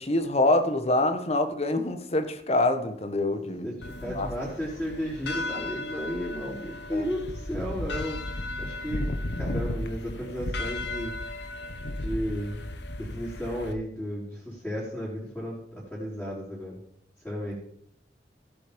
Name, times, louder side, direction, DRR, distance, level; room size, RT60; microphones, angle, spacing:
voice 1, 0.0-3.7 4.0-4.3 6.9-7.1, left 2 dB, 35° left, 8 dB, 1.4 m, -25 dB
voice 2, 3.6-8.3 8.6-9.1 9.4-11.1 11.9-12.6 13.0-16.8 17.2-17.5, equal, 5° left, -7 dB, 4.5 m, -34 dB
sound 1, 3.8-13.7, left 1 dB, 70° left, 1.3 m, -34 dB
15.5 x 7.9 x 5.4 m, 0.67 s
head